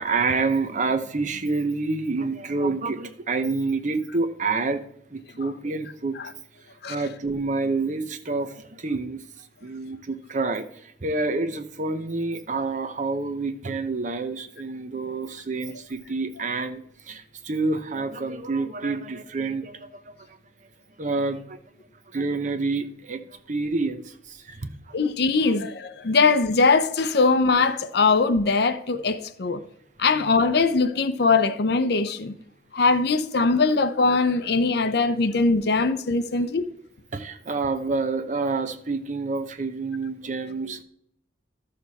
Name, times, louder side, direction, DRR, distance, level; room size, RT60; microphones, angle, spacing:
voice 1, 0.0-4.8 5.1-6.2 6.9-9.2 9.6-20.1 21.0-21.6 22.1-23.2 23.5-24.7 25.0-25.1 37.1-40.8, right 3 dB, 45° right, 0.8 m, -28 dB
voice 2, 24.9-29.6 30.0-32.3 32.7-36.7, left 4 dB, 65° left, 0.7 m, -21 dB
13.0 x 6.7 x 4.1 m
head